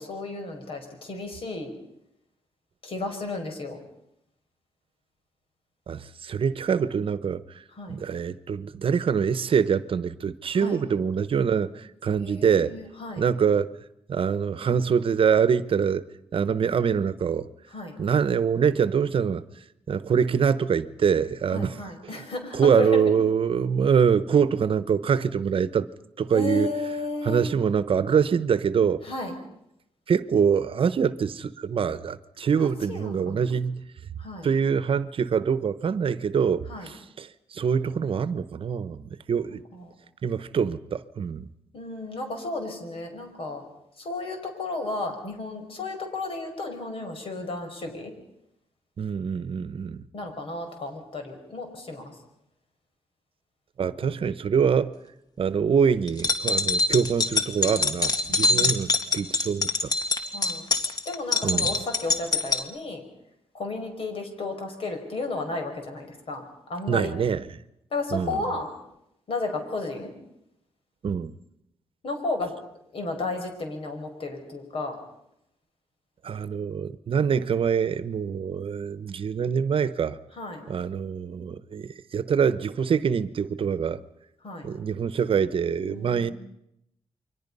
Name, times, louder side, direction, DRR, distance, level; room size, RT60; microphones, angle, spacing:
voice 1, 0.0-1.7 2.8-3.8 7.7-8.0 10.5-10.8 12.2-13.2 17.7-18.0 21.5-23.2 26.3-27.5 29.0-29.3 32.6-33.5 34.2-34.5 36.7-36.9 39.5-39.9 41.7-43.6 44.0-48.1 50.1-52.2 54.0-54.2 58.3-58.9 60.3-60.6 61.0-63.0 63.5-67.1 67.9-68.7 69.3-70.1 72.0-72.5 72.9-75.0 80.3-80.7 84.4-84.7 85.9-86.3, left 2 dB, 60° left, 5.2 m, -33 dB
voice 2, 5.9-12.7 13.2-13.7 14.1-16.0 16.3-17.5 18.0-19.4 19.9-21.8 22.5-25.9 26.2-26.7 27.2-29.0 30.1-33.9 34.4-39.6 40.2-41.5 49.0-50.0 53.8-54.9 55.4-59.9 61.4-61.7 66.9-67.4 68.1-68.4 71.0-71.3 76.2-80.2 80.7-84.0 84.6-86.3, right 7 dB, 60° right, 0.9 m, -24 dB
sound 1, 56.1-62.6, left 3 dB, 40° left, 2.0 m, -24 dB
29.0 x 23.5 x 5.5 m
cardioid pair, 90°, 10 cm